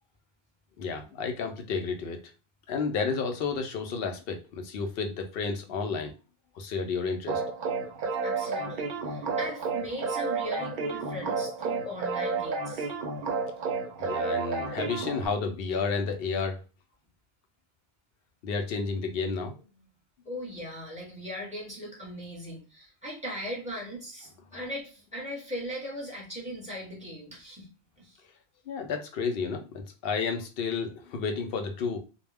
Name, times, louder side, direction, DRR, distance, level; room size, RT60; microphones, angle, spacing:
voice 1, 0.8-2.3 2.7-6.1 6.5-7.4 14.0-16.6 18.4-19.6 24.5-24.6 28.7-32.0, left 5 dB, 65° left, 5 dB, 0.7 m, -31 dB
sound 1, 7.3-15.3, right 4 dB, 60° right, 0.6 m, -31 dB
voice 2, 8.2-12.9 20.2-27.7 28.0-28.2, equal, 5° right, -3 dB, 0.9 m, -39 dB
2.2 x 2.1 x 3.3 m, 0.32 s
omnidirectional pair, 1.1 m